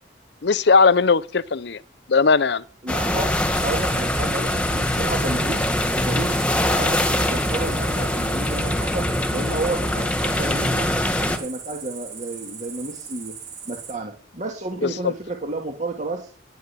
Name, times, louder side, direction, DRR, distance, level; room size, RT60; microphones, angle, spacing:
voice 1, 0.4-1.8 2.1-2.6 14.8-15.1, left 4 dB, 65° left, 0.7 m, -18 dB
voice 2, 2.8-5.6 6.0-9.1 9.3-13.3 13.7-16.3, right 2 dB, 40° right, 2.1 m, -31 dB
sound 1, 2.9-11.4, left 1 dB, 5° left, 1.8 m, -23 dB
Cricket, 3.5-13.9, right 6 dB, 60° right, 5.5 m, -39 dB
10.5 x 9.3 x 9.8 m
head